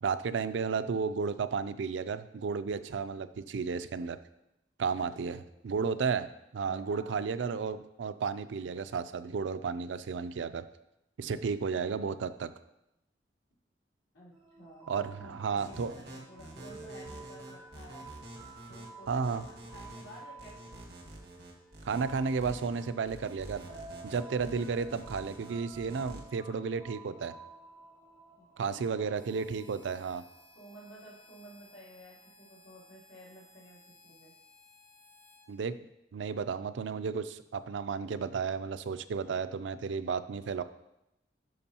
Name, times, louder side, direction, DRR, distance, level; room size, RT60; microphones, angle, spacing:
voice 1, 0.0-4.2 4.8-10.7 11.2-12.5 14.9-15.9 19.1-19.4 21.8-23.7 24.0-27.3 28.6-30.2 35.5-35.8 36.1-40.6, right 5 dB, 85° right, 12 dB, 0.4 m, -33 dB
voice 2, 6.6-7.3 14.1-18.1 18.7-20.8 28.3-28.9 30.5-34.3, equal, 85° left, -6 dB, 2.8 m, -53 dB
sound 1, 14.3-31.7, right 3 dB, 30° right, 2.2 m, -52 dB
sound 2, 15.6-26.2, right 1 dB, 60° right, 1.7 m, -48 dB
Harmonica, 29.1-35.5, left 1 dB, 10° left, 1.2 m, -59 dB
12.0 x 5.3 x 2.8 m, 0.86 s
head